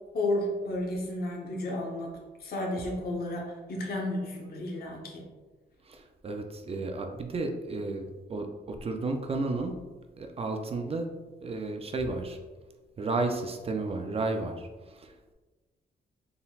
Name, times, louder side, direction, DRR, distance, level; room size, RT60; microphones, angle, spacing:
voice 1, 0.1-5.2, left 1 dB, 60° left, -1 dB, 0.8 m, -32 dB
voice 2, 5.9-9.8 10.2-11.1 11.4-12.4 13.0-15.3, right 3 dB, 35° right, 5 dB, 0.4 m, -33 dB
4.0 x 3.8 x 2.3 m, 1.3 s
wide cardioid pair, 130°, 18 cm